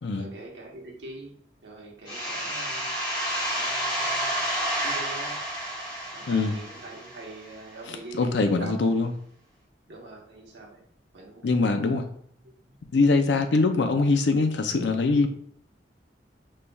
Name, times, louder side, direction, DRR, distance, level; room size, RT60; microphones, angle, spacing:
voice 1, 0.2-1.3 1.6-2.9 3.5-4.3 4.8-5.4 6.1-8.9 9.9-10.8 11.1-12.1 12.4-12.8, right 2 dB, 90° right, -1 dB, 1.2 m, -43 dB
sound 1, 2.1-7.6, equal, 25° left, 1.6 m, -30 dB
voice 2, 6.3-6.6 7.8-9.1 11.4-12.1 12.9-15.3, left 3 dB, 75° left, 6 dB, 0.5 m, -23 dB
5.3 x 3.2 x 2.3 m, 0.62 s
head